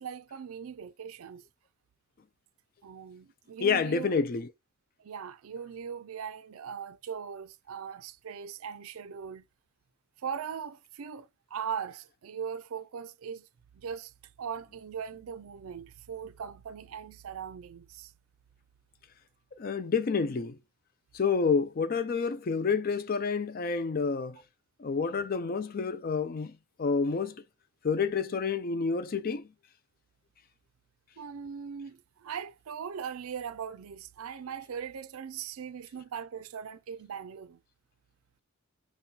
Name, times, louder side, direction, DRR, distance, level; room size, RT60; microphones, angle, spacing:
voice 1, 0.0-1.4 2.8-4.2 5.0-9.5 10.2-13.5 13.7-14.1 14.4-18.1 31.2-37.6, right 7 dB, 75° right, 0.4 m, -40 dB
voice 2, 3.6-4.5 19.6-20.6 21.1-24.4 24.8-27.4 27.8-29.5, left 5 dB, 40° left, 0.4 m, -29 dB
5.3 x 2.2 x 2.7 m
head